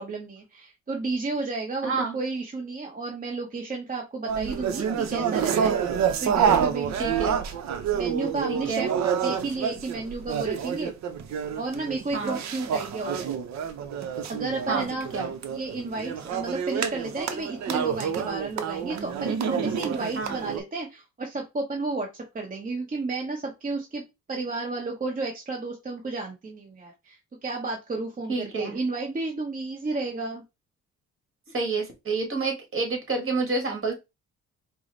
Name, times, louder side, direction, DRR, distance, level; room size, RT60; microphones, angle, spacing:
voice 1, 0.0-5.8 6.2-7.2 7.9-8.9 9.2-10.9 11.6-13.3 14.3-15.1 15.5-22.1 22.3-24.0 24.3-30.4, right 3 dB, 30° right, 0.9 m, -32 dB
voice 2, 1.8-2.2 7.0-7.4 8.5-8.9 12.1-12.4 14.7-14.9 15.1-15.3 20.1-20.3 28.3-28.8 31.5-33.9, right 3 dB, 45° right, 1.6 m, -28 dB
sound 1, 4.3-20.6, right 7 dB, 65° right, 0.7 m, -28 dB
4.7 x 2.1 x 3.9 m
cardioid pair, 90°, 30 cm